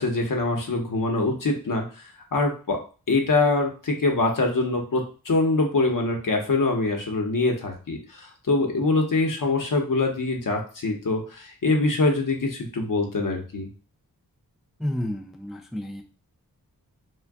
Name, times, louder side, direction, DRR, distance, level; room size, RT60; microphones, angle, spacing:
voice 1, 0.0-2.8 3.1-13.7, left 3 dB, 60° left, 2 dB, 0.8 m, -24 dB
voice 2, 14.8-16.0, left 1 dB, ahead, 3 dB, 0.4 m, -31 dB
2.4 x 2.2 x 3.5 m, 0.37 s
cardioid pair, 40°, 37 cm